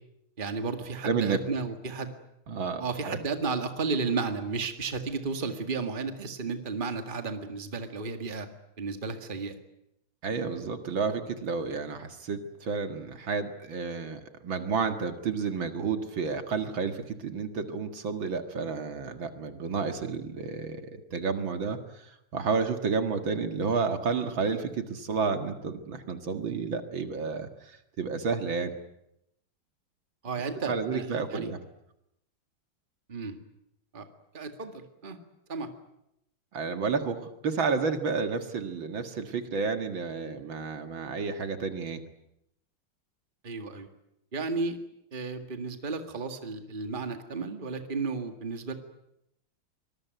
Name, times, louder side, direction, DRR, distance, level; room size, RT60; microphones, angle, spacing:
voice 1, 0.4-2.1 2.8-8.5 8.8-9.5 30.2-31.5 33.1-33.4 33.9-34.1 34.3-35.2 35.5-35.7 43.4-43.9 44.3-44.8 45.1-48.7, right 4 dB, 25° right, 7 dB, 2.0 m, -33 dB
voice 2, 1.0-1.4 2.5-3.2 10.2-28.7 30.7-31.6 36.5-42.0, right 5 dB, 65° right, 7 dB, 2.6 m, -31 dB
25.0 x 21.0 x 9.4 m, 0.82 s
omnidirectional pair, 2.4 m